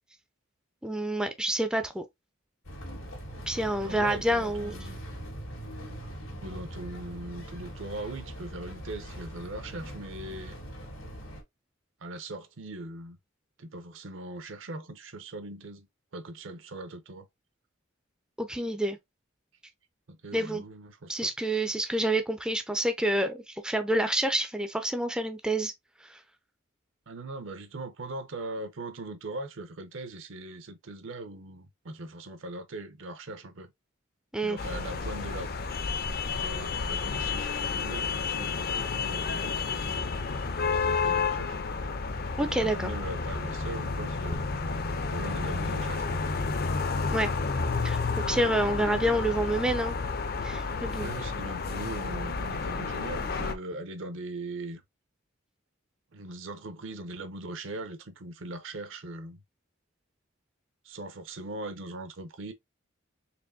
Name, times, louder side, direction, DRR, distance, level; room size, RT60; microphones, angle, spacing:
voice 1, 0.8-2.0 3.5-4.8 18.4-19.0 20.3-20.6 21.1-25.7 26.0-26.2 34.3-34.6 42.4-42.9 47.1-47.3 47.8-50.0 50.4-51.1, right 1 dB, 5° right, 0.4 m, -28 dB
sound 1, 2.7-11.4, equal, 85° left, 1.6 m, -41 dB
voice 2, 3.8-5.0 6.4-10.6 12.0-13.2 13.6-15.9 16.1-17.3 20.1-21.3 27.1-33.7 34.4-35.5 36.3-40.0 40.7-41.6 42.4-44.4 45.1-46.2 48.6-49.4 50.9-54.8 56.1-59.4 60.8-62.5, right 2 dB, 70° right, 0.8 m, -40 dB
sound 2, 34.6-53.5, left 4 dB, 50° left, 0.5 m, -31 dB
4.4 x 3.0 x 2.6 m
head